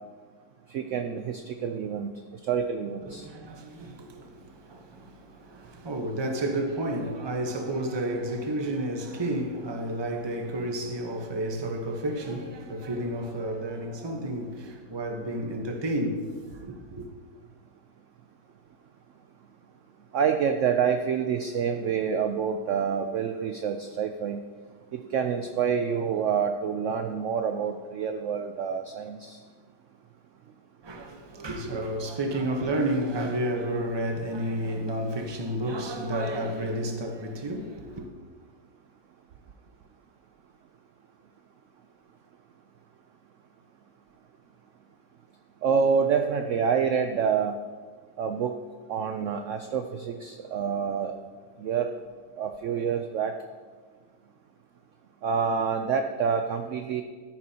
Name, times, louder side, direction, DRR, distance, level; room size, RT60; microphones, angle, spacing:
voice 1, 0.7-2.1 2.5-3.3 20.1-24.4 24.9-29.4 45.6-47.5 48.2-48.5 48.9-51.1 51.6-51.9 52.4-53.3 55.2-57.0, right 6 dB, 65° right, 0.7 m, -27 dB
voice 2, 3.0-17.0 30.8-38.0, right 1 dB, 20° right, 0.8 m, -31 dB
13.0 x 10.5 x 2.9 m
omnidirectional pair, 1.8 m